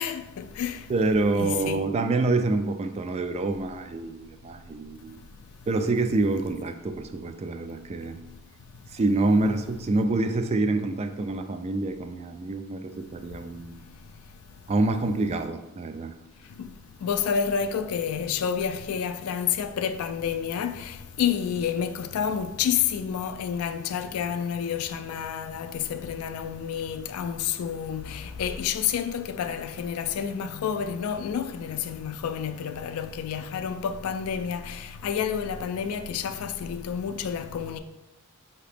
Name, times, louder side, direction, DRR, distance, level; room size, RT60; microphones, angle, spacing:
voice 1, 0.0-0.8 1.4-1.8 16.6-16.7 17.0-37.8, left 7 dB, 80° left, 0.3 m, -29 dB
voice 2, 0.9-5.2 5.7-8.2 8.9-13.8 14.7-16.1, right 2 dB, 30° right, 0.3 m, -26 dB
4.9 x 2.8 x 3.3 m
head